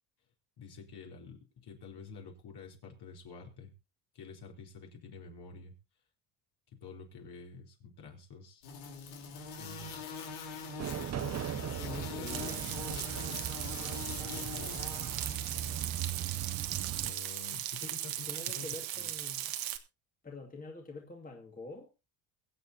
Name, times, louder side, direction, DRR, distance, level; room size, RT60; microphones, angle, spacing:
voice 1, 0.6-3.7 4.1-5.7 6.7-8.7 9.3-10.0 11.1-13.6 14.3-15.8 17.0-19.1, left 5 dB, 50° left, 4.6 m, -49 dB
sound 1, 8.6-15.8, left 6 dB, 85° left, 4.1 m, -43 dB
sound 2, 10.8-17.1, right 10 dB, 30° right, 0.7 m, -39 dB
voice 2, 11.8-12.6 17.8-17.9 18.3-19.5 20.2-21.9, left 3 dB, 15° left, 2.3 m, -46 dB
Frying (food), 12.3-19.8, right 13 dB, 70° right, 1.7 m, -38 dB
23.0 x 8.1 x 2.9 m
cardioid pair, 115°, 50 cm